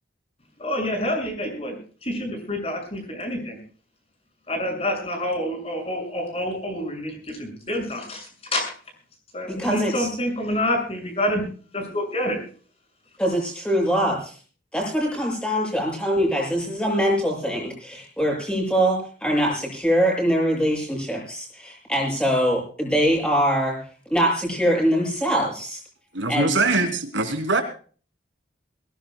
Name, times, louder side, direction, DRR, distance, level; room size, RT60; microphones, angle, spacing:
voice 1, 0.6-1.8 2.0-3.6 4.5-8.7 9.3-11.4 11.7-12.4, left 1 dB, 30° left, 6.8 m, -27 dB
voice 2, 9.5-10.1 13.2-14.3 14.7-23.8 24.1-25.8 26.3-26.5, equal, 5° left, 7.7 m, -23 dB
voice 3, 26.1-27.6, right 3 dB, 80° right, 3.3 m, -22 dB
22.5 x 18.5 x 2.3 m
head